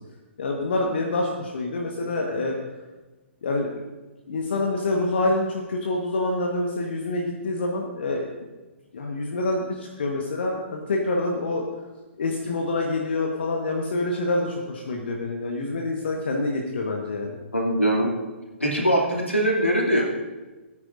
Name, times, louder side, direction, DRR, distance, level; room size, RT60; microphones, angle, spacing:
voice 1, 0.4-2.6 3.4-3.7 4.3-8.3 8.9-11.7 12.2-17.4, left 2 dB, 55° left, 0 dB, 1.3 m, -26 dB
voice 2, 17.5-18.1 18.6-20.1, right 1 dB, 85° left, -1 dB, 2.6 m, -22 dB
18.0 x 9.7 x 2.6 m, 1.2 s
figure-of-eight pair, 115°, 7 cm